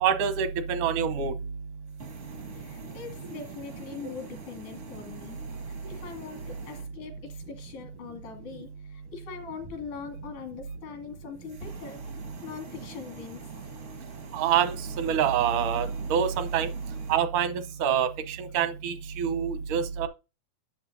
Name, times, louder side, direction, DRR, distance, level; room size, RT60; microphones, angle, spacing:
voice 1, 0.0-1.3 14.3-16.7 17.1-20.1, right 8 dB, 85° right, 2.5 m, -26 dB
sound 1, 1.9-6.9 11.4-17.2, right 3 dB, 65° right, 0.7 m, -45 dB
voice 2, 2.5-5.4 5.7-12.0 12.4-13.5, left 5 dB, 80° left, 3.6 m, -41 dB
10.5 x 7.8 x 2.6 m
omnidirectional pair, 3.5 m